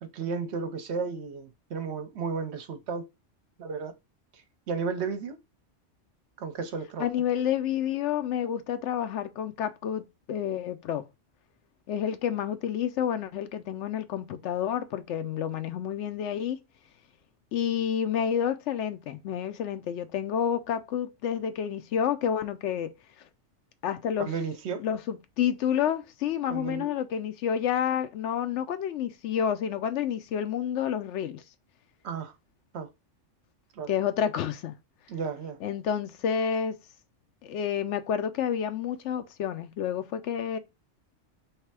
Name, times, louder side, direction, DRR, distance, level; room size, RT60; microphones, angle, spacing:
voice 1, 0.0-3.1 3.6-3.9 4.3-5.4 6.4-7.1 24.2-24.8 26.5-26.9 32.0-32.3 32.7-32.9 33.7-33.9 35.1-35.6, right 5 dB, 65° right, 0.9 m, -33 dB
voice 2, 7.0-11.1 11.9-16.6 17.5-22.9 23.8-24.3 24.8-31.4 33.9-34.7 35.6-36.8 37.4-40.6, left 9 dB, 75° left, 0.9 m, -29 dB
3.3 x 3.2 x 4.5 m
omnidirectional pair, 1.3 m